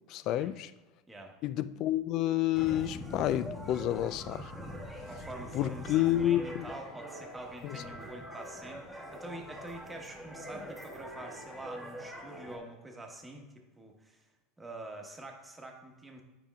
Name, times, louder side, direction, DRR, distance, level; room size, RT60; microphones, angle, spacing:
voice 1, 0.1-0.7 1.4-4.5 5.5-6.7 7.6-7.8, left 13 dB, 55° left, 0.3 m, -30 dB
sound 1, 2.5-12.6, equal, 5° left, 1.3 m, -44 dB
voice 2, 5.1-13.4 13.8-14.2 14.6-16.2, right 2 dB, 15° right, 1.1 m, -46 dB
8.8 x 5.2 x 2.3 m
supercardioid pair, 105°, 0 cm